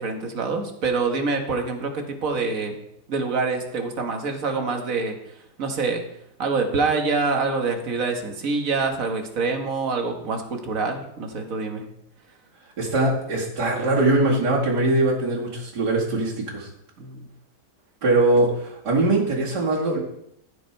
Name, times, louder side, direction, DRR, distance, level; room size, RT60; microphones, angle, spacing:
voice 1, 0.0-2.8 3.1-6.0 6.4-11.9 17.0-17.3, right 4 dB, 55° right, 3 dB, 1.7 m, -26 dB
voice 2, 12.8-16.7 18.0-20.0, right 2 dB, 80° right, -6 dB, 3.0 m, -21 dB
15.0 x 5.6 x 4.5 m, 0.77 s
omnidirectional pair, 1.8 m